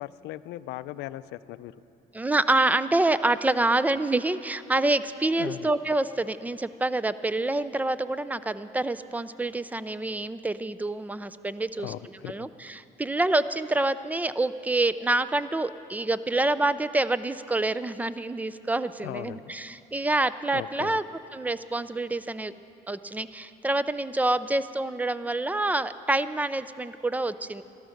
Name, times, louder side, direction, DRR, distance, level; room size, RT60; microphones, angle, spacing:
voice 1, 0.0-1.7 5.4-5.7 11.8-12.5 19.0-19.5 20.5-21.0, left 15 dB, 85° left, 15 dB, 0.4 m, -38 dB
voice 2, 2.1-11.9 12.2-21.0 21.3-22.5 22.9-27.6, right 2 dB, 10° right, 15 dB, 0.4 m, -27 dB
13.5 x 12.5 x 6.5 m, 2.7 s
cardioid pair, 110°, 17 cm